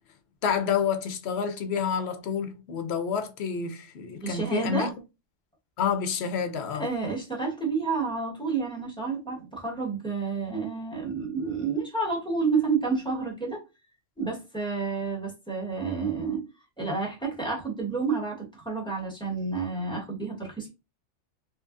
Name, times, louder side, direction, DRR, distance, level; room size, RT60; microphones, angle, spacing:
voice 1, 0.4-4.9 5.8-6.9, left 7 dB, 65° left, 0.8 m, -28 dB
voice 2, 4.2-4.9 6.8-13.6 14.2-16.4 16.8-20.7, right 4 dB, 5° left, 1.2 m, -30 dB
3.6 x 2.8 x 2.5 m
omnidirectional pair, 1.3 m